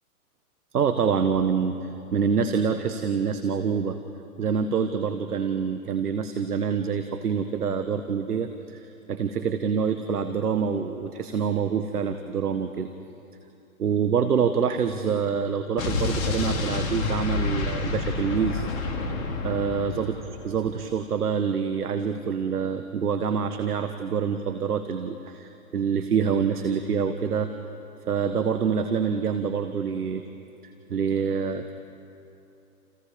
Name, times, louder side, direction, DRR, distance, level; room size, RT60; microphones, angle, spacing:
voice 1, 0.7-4.0 4.4-12.9 13.8-18.6 19.4-20.1 20.4-27.5 28.1-30.2 30.9-31.7, right 6 dB, 75° right, 8 dB, 1.5 m, -26 dB
Explosion, 15.8-20.6, left 4 dB, 60° left, 4.3 m, -29 dB
29.5 x 29.5 x 5.2 m, 2.7 s
hypercardioid pair, 120°, 46 cm